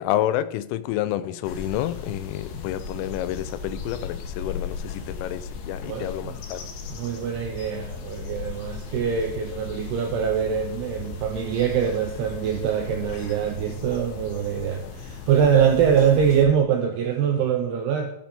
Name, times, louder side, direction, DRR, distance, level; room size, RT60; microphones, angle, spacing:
voice 1, 0.0-6.6, left 13 dB, 90° left, 3.2 m, -29 dB
sound 1, 1.4-16.5, left 5 dB, 70° left, 2.5 m, -37 dB
voice 2, 5.9-6.4 6.9-18.1, right 8 dB, 85° right, 2.3 m, -23 dB
13.5 x 6.0 x 4.2 m
omnidirectional pair, 5.6 m